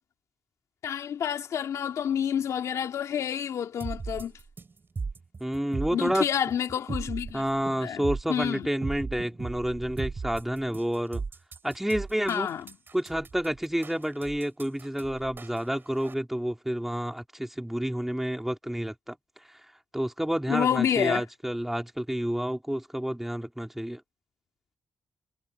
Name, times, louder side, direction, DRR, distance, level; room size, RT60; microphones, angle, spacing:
voice 1, 0.8-4.3 5.9-7.4 7.8-8.7 12.3-12.7 20.5-21.2, left 9 dB, 80° left, 2.5 m, -29 dB
sound 1, 3.8-16.1, right 4 dB, 45° right, 4.4 m, -37 dB
voice 2, 5.4-6.3 7.3-11.2 11.6-12.5 12.9-19.2 19.4-19.6 19.9-24.0, equal, 5° right, 3.0 m, -29 dB
cardioid pair, 70°, 5 cm